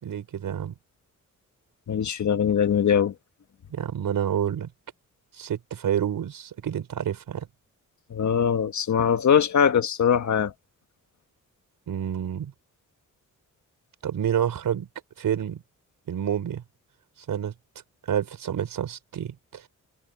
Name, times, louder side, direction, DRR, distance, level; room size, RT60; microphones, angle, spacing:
voice 1, 0.0-0.7 3.7-4.7 5.4-7.5 11.9-12.5 14.0-14.9 15.2-15.6 16.1-16.6 17.3-17.5 18.1-19.6, right 9 dB, 90° right, 4.5 m, -28 dB
voice 2, 1.9-3.1 8.1-10.5, left 8 dB, 60° left, 1.6 m, -22 dB
wide cardioid pair, 135°, 32 cm